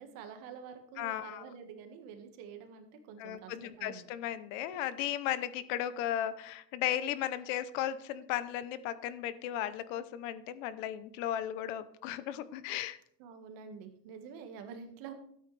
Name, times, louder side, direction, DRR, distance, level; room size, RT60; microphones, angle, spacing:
voice 1, 0.0-4.1 13.2-15.1, right 7 dB, 50° right, 6 dB, 1.7 m, -48 dB
voice 2, 1.0-1.5 3.2-13.0, left 11 dB, 60° left, 14 dB, 0.8 m, -35 dB
13.0 x 8.8 x 3.3 m, 0.66 s
supercardioid pair, 155°, 43 cm